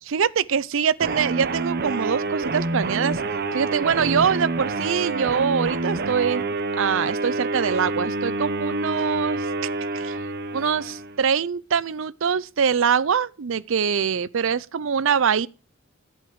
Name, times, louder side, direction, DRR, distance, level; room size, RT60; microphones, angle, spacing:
voice 1, 0.1-3.2 3.5-6.5 6.8-9.5 9.9-10.1 10.5-15.5, right 7 dB, 70° right, 0.5 m, -23 dB
sound 1, 1.0-11.2, right 3 dB, 50° right, 1.0 m, -27 dB
13.5 x 8.1 x 4.7 m
head